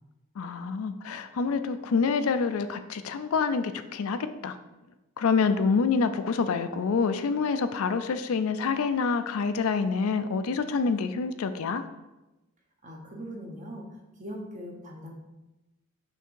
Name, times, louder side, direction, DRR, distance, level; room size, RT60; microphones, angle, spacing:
voice 1, 0.4-4.6 5.2-11.8, left 5 dB, 75° left, 10 dB, 0.4 m, -27 dB
voice 2, 12.8-13.9 14.2-15.1, equal, 35° right, 0 dB, 1.0 m, -40 dB
5.8 x 3.5 x 4.6 m, 1.0 s
head